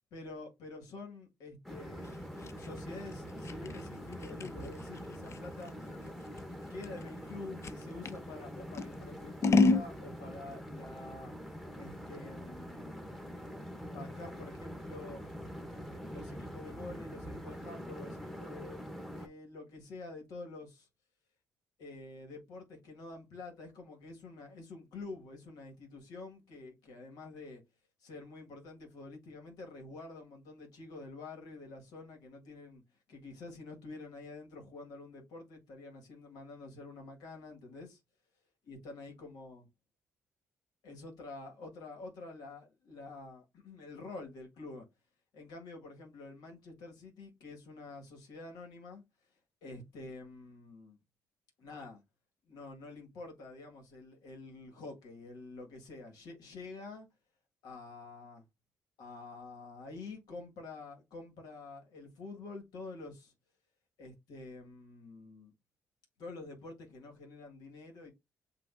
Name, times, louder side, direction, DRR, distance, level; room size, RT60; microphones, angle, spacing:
voice 1, 0.1-2.2 2.6-6.2 6.7-11.3 11.7-13.1 13.9-15.2 15.7-15.8 16.1-20.9 21.8-27.6 28.0-32.8 33.1-38.0 38.7-39.7 40.8-44.8 45.3-49.0 49.6-51.0 51.6-52.0 52.5-57.1 57.6-58.4 59.0-63.3 64.0-65.5 66.2-68.1, left 3 dB, 80° left, 1.7 m, -48 dB
sound 1, 1.6-19.3, equal, 5° left, 1.1 m, -44 dB
Scissors, 2.0-8.2 8.7-9.9, left 3 dB, 45° left, 0.5 m, -31 dB
7.7 x 2.6 x 2.5 m
supercardioid pair, 60°, 7 cm